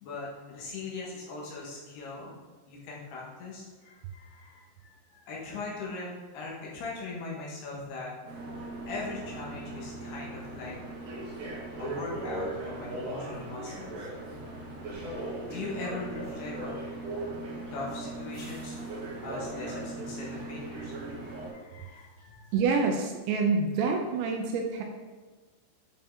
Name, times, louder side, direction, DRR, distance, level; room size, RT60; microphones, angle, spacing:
voice 1, 0.0-2.4 2.7-8.1 8.9-10.8 11.8-14.1 15.4-16.8 17.7-18.8 19.2-20.9 21.2-22.6, left 3 dB, 70° left, -4 dB, 3.0 m, -40 dB
sound 1, 8.2-21.5, right 2 dB, 55° right, 2.4 m, -38 dB
voice 2, 22.5-24.8, right 4 dB, 80° right, 3 dB, 2.7 m, -27 dB
9.0 x 5.4 x 3.6 m, 1.3 s
omnidirectional pair, 5.5 m